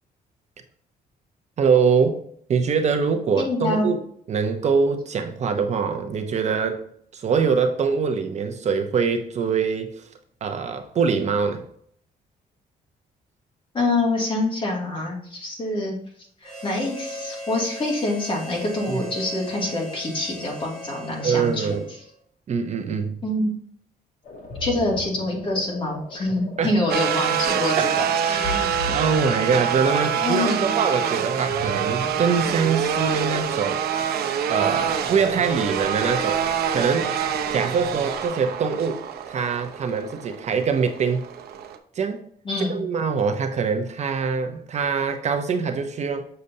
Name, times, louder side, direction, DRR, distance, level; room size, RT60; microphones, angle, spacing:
voice 1, 1.6-2.2 2.5-4.0 4.3-6.8 7.1-10.1 10.4-11.6 18.9-19.0 21.2-21.9 22.5-23.2 26.6-26.8 27.8-27.9 28.2-33.8 34.5-36.4 36.7-37.1 37.5-39.0 39.3-41.2 41.9-42.2 42.7-46.3, right 5 dB, 45° right, 6 dB, 0.7 m, -23 dB
voice 2, 3.4-3.9 13.7-16.0 16.4-21.8 23.2-23.5 24.6-28.7 30.2-30.7 42.4-42.8, left 2 dB, 30° left, -1 dB, 2.2 m, -26 dB
Harmonica, 16.4-22.2, equal, 5° left, 2.1 m, -38 dB
sound 1, 24.2-38.3, left 2 dB, 60° left, 2.5 m, -39 dB
sound 2, 26.9-41.8, right 8 dB, 80° right, 0.7 m, -26 dB
6.7 x 6.5 x 2.7 m, 0.63 s
cardioid pair, 140°, 16 cm